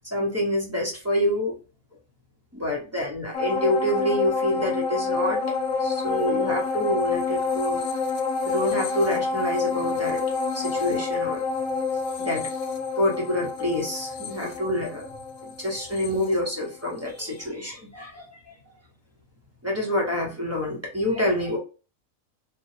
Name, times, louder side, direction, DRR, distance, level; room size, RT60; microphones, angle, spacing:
voice 1, 0.1-1.5 2.5-5.4 5.8-7.8 8.4-10.2 10.5-11.7 12.2-12.5 13.0-15.1 15.6-18.4 19.6-21.6, left 1 dB, 10° right, -3 dB, 0.9 m, -27 dB
sound 1, 3.3-17.0 17.4-17.5, left 4 dB, 85° left, 1.0 m, -28 dB
3.0 x 2.3 x 2.8 m, 0.33 s
omnidirectional pair, 1.4 m